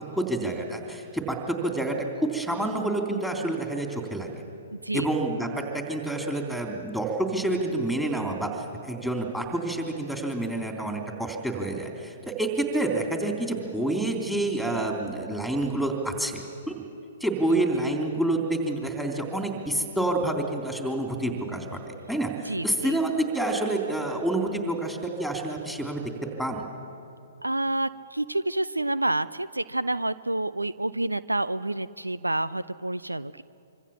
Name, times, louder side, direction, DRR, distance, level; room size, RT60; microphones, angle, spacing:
voice 1, 0.2-4.3 4.9-16.7 17.2-26.1 26.4-26.7, right 2 dB, ahead, 3 dB, 3.4 m, -28 dB
voice 2, 4.7-5.1 22.5-23.0 27.4-33.4, right 2 dB, 85° right, 16 dB, 0.6 m, -28 dB
25.5 x 25.0 x 7.3 m, 2.6 s
figure-of-eight pair, 115°, 0 cm